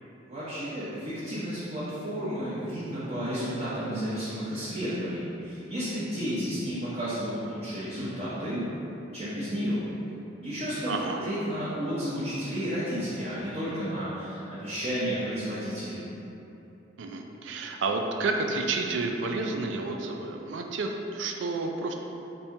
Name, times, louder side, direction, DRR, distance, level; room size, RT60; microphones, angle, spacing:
voice 1, 0.2-8.6 9.1-9.8 10.4-10.9 11.2-16.0, equal, 35° right, -11 dB, 0.7 m, -32 dB
voice 2, 10.9-11.2 17.0-21.9, right 3 dB, 70° right, 3 dB, 0.4 m, -30 dB
4.2 x 2.6 x 3.5 m, 2.9 s
head